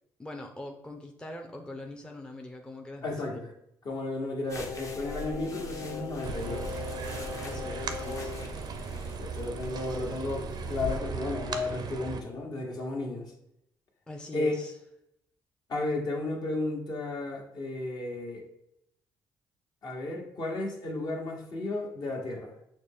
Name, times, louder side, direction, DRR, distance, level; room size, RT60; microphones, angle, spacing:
voice 1, 0.2-3.4 7.4-9.1 14.1-14.7, left 1 dB, 10° left, 2 dB, 0.5 m, -42 dB
voice 2, 3.0-3.5 3.8-6.8 9.2-13.2 14.3-14.5 15.7-18.5 19.8-22.5, left 2 dB, 55° left, 0 dB, 1.1 m, -33 dB
sound 1, 4.5-11.0, left 2 dB, 40° left, 0.8 m, -43 dB
Singing, 4.7-8.5 8.8-9.0, left 6 dB, 70° left, 0.5 m, -40 dB
sound 2, 6.2-12.2, right 5 dB, 60° right, 0.5 m, -37 dB
6.3 x 2.1 x 3.5 m, 0.78 s
supercardioid pair, 70°, 8 cm